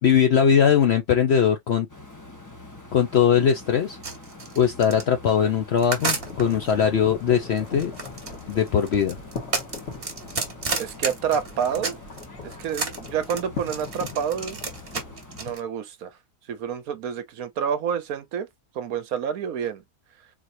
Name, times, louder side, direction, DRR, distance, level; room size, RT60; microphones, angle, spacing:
voice 1, 0.0-1.9 2.9-4.0 4.6-7.9 8.5-9.2, left 8 dB, 65° left, 0.6 m, -20 dB
sound 1, 1.9-15.6, left 2 dB, 15° left, 0.8 m, -45 dB
sound 2, 4.0-6.7 7.6-12.2 12.5-15.6, right 4 dB, 40° right, 1.4 m, -31 dB
sound 3, 6.1-15.2, left 4 dB, 50° left, 1.9 m, -40 dB
voice 2, 10.8-12.0 12.4-14.6 15.4-16.2 16.5-18.5 18.7-19.8, right 8 dB, 70° right, 1.1 m, -28 dB
4.1 x 3.0 x 2.6 m
omnidirectional pair, 1.7 m